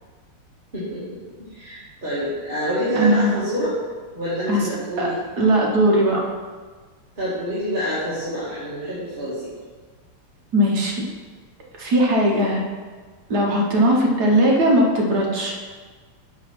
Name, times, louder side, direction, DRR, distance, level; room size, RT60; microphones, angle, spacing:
voice 1, 0.7-1.2 1.5-3.8 4.1-5.2 7.2-9.4, equal, 25° right, -11 dB, 1.8 m, -27 dB
voice 2, 2.9-3.4 4.5-4.6 5.0-5.1 5.4-6.3 10.5-10.9 11.8-12.6 13.3-15.5, right 1 dB, 50° right, -2 dB, 1.5 m, -18 dB
6.6 x 5.4 x 6.0 m, 1.5 s
omnidirectional pair, 2.4 m